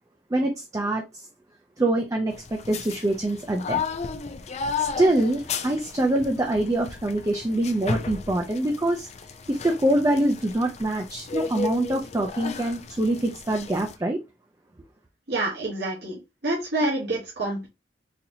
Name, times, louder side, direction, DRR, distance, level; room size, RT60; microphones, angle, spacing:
voice 1, 0.3-1.0 1.8-3.8 4.8-9.1 9.5-14.2, right 1 dB, 20° right, 0.5 m, -24 dB
sound 1, 2.3-14.0, left 5 dB, 35° left, 0.4 m, -34 dB
voice 2, 15.3-17.7, right 2 dB, 65° right, 1.2 m, -27 dB
4.0 x 2.8 x 2.7 m
head